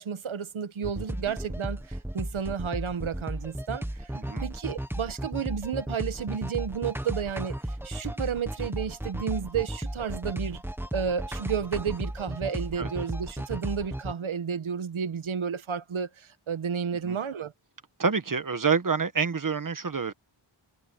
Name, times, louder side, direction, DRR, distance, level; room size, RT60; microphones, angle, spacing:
voice 1, 0.0-4.1 4.4-10.6 10.9-17.5, right 7 dB, 75° right, 1.5 m, -32 dB
sound 1, 0.8-14.1, right 1 dB, 5° right, 1.4 m, -34 dB
voice 2, 4.1-4.5 12.8-12.9 17.0-17.2 18.0-20.1, right 5 dB, 40° right, 1.4 m, -27 dB
wide cardioid pair, 150°, 48 cm